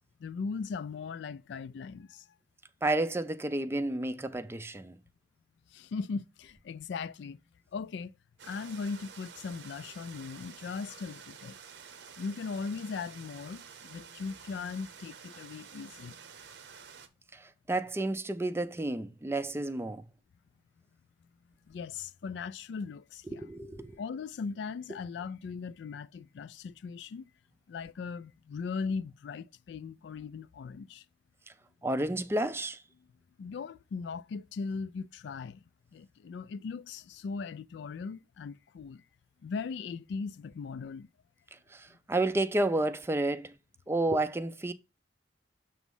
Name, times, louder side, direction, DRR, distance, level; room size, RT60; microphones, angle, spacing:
voice 1, 0.2-2.2 5.7-7.4 7.7-8.1 8.4-11.6 12.2-16.2 21.7-23.5 24.0-27.3 27.7-31.0 33.4-35.6 35.9-39.0 39.4-41.1, left 5 dB, 65° left, 0.3 m, -39 dB
voice 2, 2.8-5.0 17.3-20.0 23.3-24.0 31.8-32.8 41.7-43.5 43.9-44.7, right 2 dB, 15° right, 0.4 m, -31 dB
sound 1, 8.4-17.1, right 6 dB, 70° right, 0.8 m, -50 dB
7.1 x 3.1 x 5.3 m
head